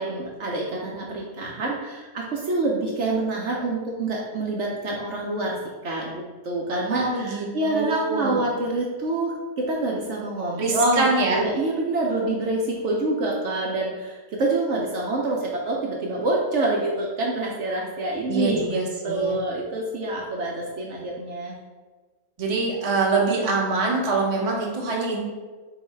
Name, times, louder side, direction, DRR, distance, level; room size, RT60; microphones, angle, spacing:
voice 1, 0.0-5.6 5.8-21.6, right 2 dB, 65° right, -2 dB, 0.9 m, -26 dB
voice 2, 6.9-8.4 10.6-11.5 18.3-19.4 22.4-25.2, right 3 dB, 35° right, -3 dB, 0.7 m, -24 dB
3.8 x 2.8 x 4.3 m, 1.3 s
omnidirectional pair, 1.5 m